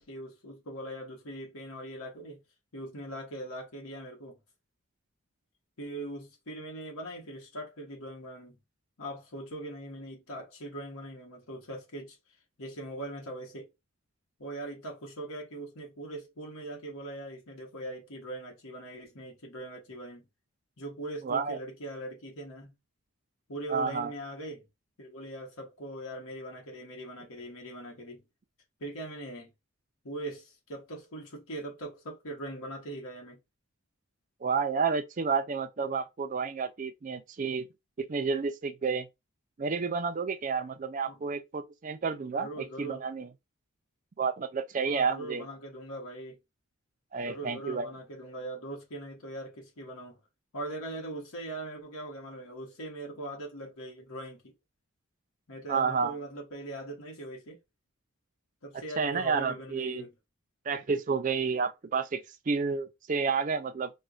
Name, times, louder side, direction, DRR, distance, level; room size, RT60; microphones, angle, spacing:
voice 1, 0.0-2.4 2.7-4.4 5.8-8.6 9.0-13.7 14.4-20.3 20.8-22.7 23.5-24.7 25.0-28.2 28.8-29.5 30.0-33.4 41.1-41.2 42.3-43.0 44.8-46.4 47.2-50.2 50.5-54.5 55.5-57.6 58.6-60.1, right 1 dB, 80° left, 1.0 m, -41 dB
voice 2, 21.2-21.6 23.7-24.1 34.4-37.7 38.0-39.1 39.6-42.5 42.8-43.3 44.2-45.4 47.1-47.9 55.7-56.1 59.0-60.0 60.7-63.9, right 5 dB, 35° right, 0.4 m, -30 dB
4.3 x 2.1 x 2.4 m
head